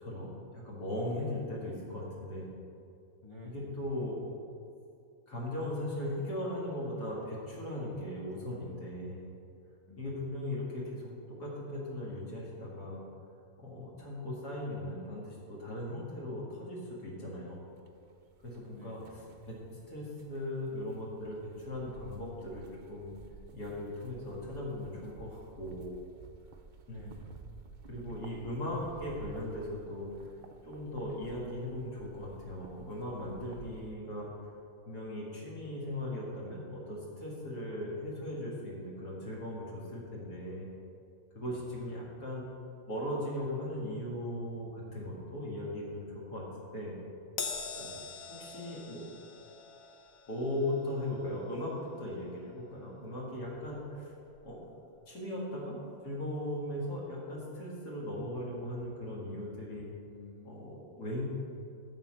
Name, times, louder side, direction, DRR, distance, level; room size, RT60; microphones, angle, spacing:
voice 1, 0.0-2.5 3.4-4.2 5.3-9.3 10.0-13.0 13.6-17.7 18.4-19.0 19.5-23.1 23.5-26.0 26.9-27.2 27.9-30.1 30.6-34.3 34.9-40.7 41.3-42.5 42.9-46.4 46.7-46.9 47.7-47.9 48.4-49.0 50.3-51.7 52.0-54.1 54.4-54.6 55.1-55.8 56.0-59.9 60.4-61.3, left 1 dB, 85° left, -5 dB, 2.4 m, -38 dB
voice 2, 3.2-3.8 9.9-10.2 18.7-19.5 26.9-27.4 41.4-41.7 47.8-48.1 60.1-60.7, left 2 dB, 30° left, 0 dB, 0.6 m, -52 dB
sound 1, 17.8-33.9, right 5 dB, 80° right, 0.4 m, -54 dB
Crash cymbal, 47.4-54.0 54.3-54.6 55.6-55.7, left 5 dB, 65° left, 1.2 m, -45 dB
12.0 x 4.3 x 7.5 m, 2.5 s
omnidirectional pair, 1.6 m